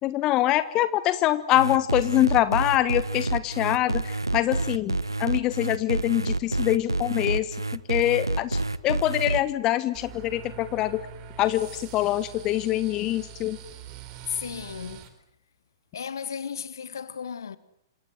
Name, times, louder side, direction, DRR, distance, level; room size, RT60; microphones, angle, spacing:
voice 1, 0.0-8.6 8.8-11.1 11.4-13.6, left 14 dB, 25° left, 1.2 m, -24 dB
sound 1, 1.5-9.4, right 2 dB, 85° right, 1.3 m, -28 dB
sound 2, 9.9-15.1, right 8 dB, 30° right, 4.5 m, -43 dB
voice 2, 14.3-15.1 15.9-17.6, left 7 dB, 60° left, 2.0 m, -34 dB
28.5 x 26.5 x 7.9 m
figure-of-eight pair, 110°, 2 cm